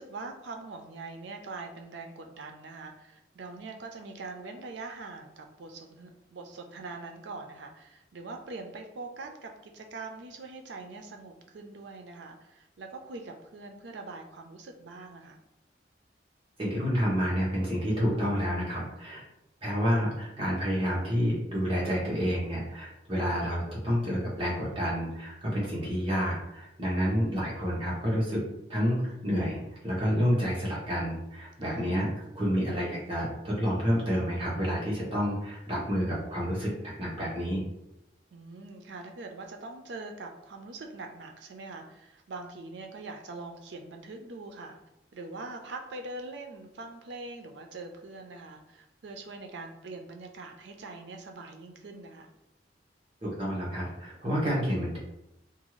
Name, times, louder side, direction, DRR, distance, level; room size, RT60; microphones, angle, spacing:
voice 1, 0.0-15.4 31.7-31.9 38.3-44.8 45.1-52.3, right 3 dB, 85° right, 4 dB, 0.4 m, -43 dB
voice 2, 16.6-19.2 19.6-28.4 28.7-32.1 32.3-36.7 37.0-37.6 53.2-55.0, equal, 30° right, -6 dB, 0.9 m, -29 dB
2.6 x 2.3 x 3.0 m, 0.85 s
head